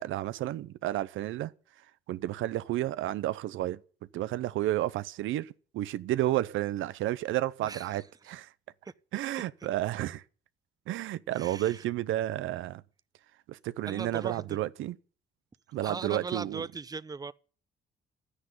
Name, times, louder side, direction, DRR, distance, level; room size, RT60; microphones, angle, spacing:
voice 1, 0.0-1.5 1.8-3.8 4.1-8.5 9.1-10.2 10.9-12.8 13.5-15.0 15.7-16.6, right 14 dB, 85° right, 0.7 m, -31 dB
voice 2, 7.6-8.0 8.8-8.9 11.3-11.8 13.8-14.6 15.8-17.3, right 4 dB, 20° right, 0.7 m, -39 dB
12.0 x 10.0 x 9.6 m
cardioid pair, 90°, 20 cm